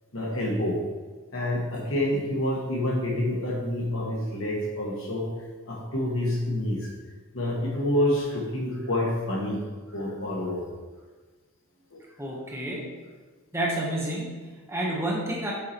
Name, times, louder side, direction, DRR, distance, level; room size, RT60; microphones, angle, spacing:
voice 1, 0.1-0.8 1.3-5.3 5.6-6.9 7.3-9.6 9.9-10.7 11.9-12.0, left 1 dB, 65° left, -2 dB, 1.6 m, -28 dB
voice 2, 12.2-12.9 13.5-15.5, right 1 dB, 10° right, -3 dB, 0.9 m, -30 dB
6.5 x 4.8 x 4.2 m, 1.4 s
head